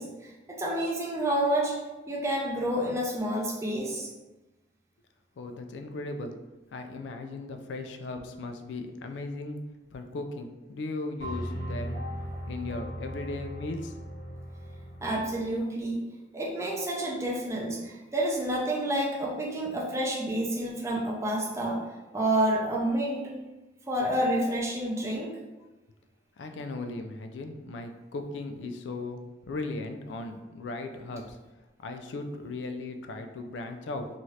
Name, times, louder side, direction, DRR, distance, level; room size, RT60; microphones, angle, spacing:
voice 1, 0.0-1.7 2.1-4.1 15.0-16.0 16.3-21.8 22.1-23.2 23.9-25.3, right 1 dB, 15° right, -3 dB, 0.4 m, -29 dB
voice 2, 5.4-6.3 6.7-9.6 9.9-12.0 12.5-14.0 26.4-31.4 31.8-34.1, left 2 dB, 85° left, 6 dB, 0.4 m, -37 dB
sound 1, 11.2-15.4, equal, 65° left, 0.8 m, -37 dB
2.7 x 2.4 x 3.1 m, 1.1 s
head